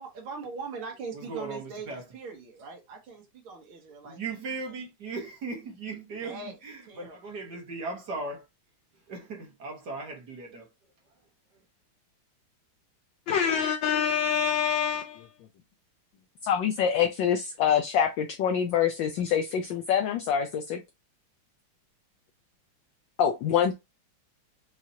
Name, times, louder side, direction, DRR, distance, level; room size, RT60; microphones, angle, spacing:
voice 1, 0.0-1.9 2.1-4.2 6.2-6.5 6.9-7.2, right 4 dB, 70° right, 2.1 m, -40 dB
voice 2, 1.1-2.1 4.0-8.5 8.9-10.7 11.5-11.6, right 3 dB, 55° right, 1.8 m, -38 dB
voice 3, 13.3-15.3 16.4-20.8 23.2-23.7, left 8 dB, 70° left, 1.2 m, -25 dB
5.6 x 3.1 x 2.7 m
omnidirectional pair, 2.4 m